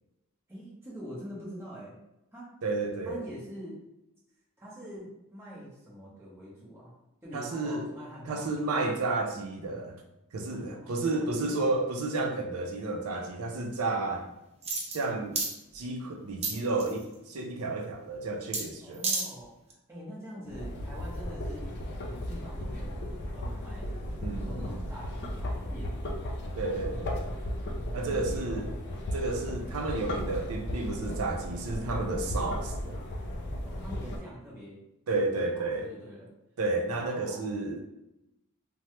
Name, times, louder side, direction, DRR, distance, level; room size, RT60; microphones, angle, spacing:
voice 1, 0.5-2.0 2.3-2.5 3.0-3.8 4.6-6.9 7.2-8.8 10.8-11.6 18.8-21.7 22.1-23.9 24.3-25.9 27.6-28.7 33.6-34.8 35.3-36.3 37.0-37.5, equal, 10° right, -8 dB, 0.9 m, -45 dB
voice 2, 2.6-3.2 7.3-7.9 8.3-10.0 10.3-14.3 14.9-15.4 15.7-19.0 24.2-24.8 26.6-27.2 27.9-28.7 29.1-33.0 35.1-35.9 36.6-37.8, right 2 dB, 80° right, 3 dB, 0.5 m, -31 dB
sound 1, 14.6-15.0 15.4-15.5 16.4-17.0 18.5-18.6 18.9-19.3 19.7-19.8, right 3 dB, 30° right, 0.4 m, -30 dB
sound 2, 20.5-34.2, left 1 dB, 50° left, 0.5 m, -35 dB
3.1 x 2.1 x 2.8 m, 0.89 s
head